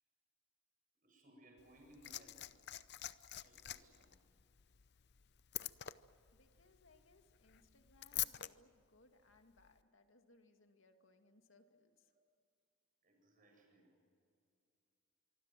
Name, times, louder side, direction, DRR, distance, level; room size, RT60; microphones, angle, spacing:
voice 1, 1.0-2.5 3.3-4.2 12.1-12.3 13.0-13.9, right 1 dB, 40° right, 1 dB, 7.8 m, -64 dB
Liquid, 1.6-8.5 9.6-9.7, left 14 dB, 55° left, 0.6 m, -46 dB
voice 2, 6.3-12.1, left 2 dB, 75° left, 5 dB, 2.2 m, -69 dB
25.0 x 24.5 x 7.7 m, 2.3 s
head